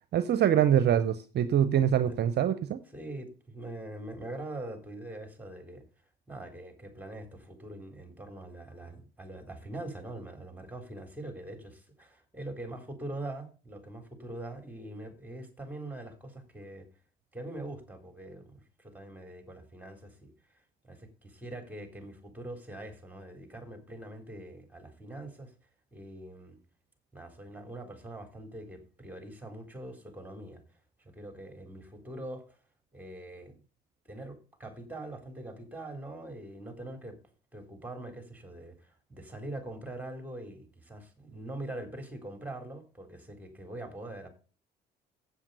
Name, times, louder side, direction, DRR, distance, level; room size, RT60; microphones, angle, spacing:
voice 1, 0.1-2.8, right 9 dB, 55° right, 0.7 m, -24 dB
voice 2, 2.8-5.8 6.3-16.9 17.3-25.5 25.9-26.6 27.1-30.6 31.0-32.6 32.9-33.6 34.1-37.2 37.5-44.3, right 1 dB, 10° right, 3.8 m, -43 dB
8.1 x 7.3 x 6.7 m
hypercardioid pair, 60°, 20 cm